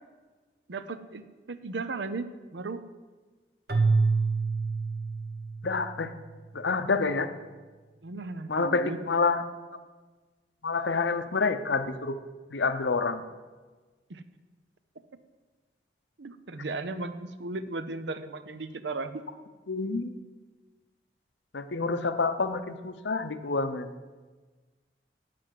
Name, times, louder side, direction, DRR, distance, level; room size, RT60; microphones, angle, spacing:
voice 1, 0.7-2.3 2.5-2.8 8.0-9.0 14.1-14.2 16.2-19.1, right 3 dB, 90° right, 11 dB, 0.7 m, -36 dB
Keyboard (musical), 3.7-5.9, right 4 dB, 60° right, 1.0 m, -26 dB
voice 2, 5.6-6.1 6.5-7.3 8.5-9.4 10.6-12.2 12.5-13.2 19.7-20.2 21.5-23.9, left 4 dB, 90° left, 10 dB, 0.8 m, -28 dB
9.3 x 7.7 x 7.6 m, 1.3 s
head